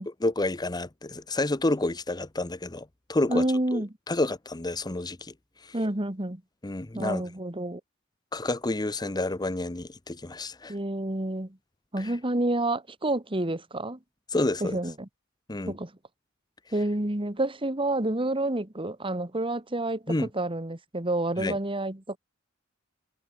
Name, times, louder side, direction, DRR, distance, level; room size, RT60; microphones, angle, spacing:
voice 1, 0.0-3.5 3.7-5.3 5.6-5.7 6.6-7.2 8.3-10.8 12.0-12.1 14.3-14.8 15.5-15.7 20.1-20.3 21.4-21.6, left 2 dB, 20° left, 0.9 m, -29 dB
voice 2, 3.3-3.9 5.7-6.4 6.9-7.8 10.7-11.6 11.9-14.0 14.6-15.1 15.7-15.9 16.7-22.2, right 1 dB, 25° right, 1.9 m, -29 dB
head